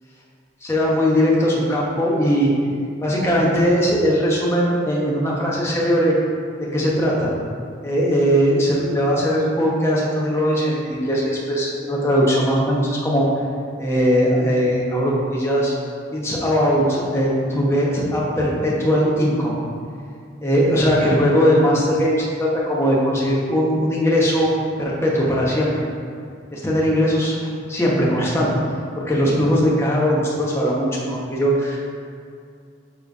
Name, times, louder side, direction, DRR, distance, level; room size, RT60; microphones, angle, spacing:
voice 1, 0.7-2.5 3.0-6.2 6.6-7.3 7.8-13.2 13.8-15.7 16.1-19.6 20.4-24.5 24.8-25.7 26.5-27.3 27.7-28.6 28.9-31.8, equal, 15° left, -5 dB, 1.1 m, -19 dB
7.1 x 3.3 x 5.4 m, 2.3 s
head